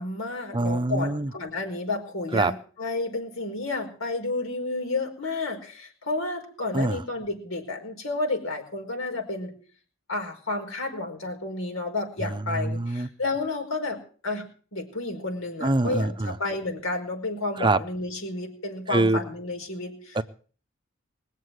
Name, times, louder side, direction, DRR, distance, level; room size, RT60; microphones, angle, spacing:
voice 1, 0.0-9.5 10.1-20.2, left 2 dB, 85° left, 2 dB, 4.9 m, -31 dB
voice 2, 0.5-1.3 2.3-2.5 6.7-7.0 12.2-12.3 12.6-13.1 15.6-16.3 17.6-17.8 18.9-19.2 20.2-20.3, right 2 dB, 25° right, 11 dB, 0.6 m, -24 dB
21.0 x 7.4 x 7.9 m, 0.43 s
head